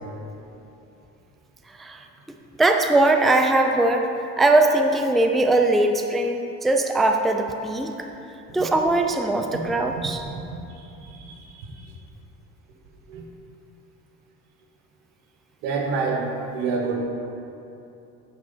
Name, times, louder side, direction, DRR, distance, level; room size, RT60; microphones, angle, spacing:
voice 1, 2.6-4.1 4.4-8.1 8.5-10.2, right 2 dB, ahead, 4 dB, 0.4 m, -20 dB
voice 2, 10.7-11.9 13.1-13.2 15.6-17.0, right 4 dB, 85° right, 1 dB, 1.3 m, -28 dB
9.6 x 3.9 x 5.5 m, 2.8 s
supercardioid pair, 90°, 41 cm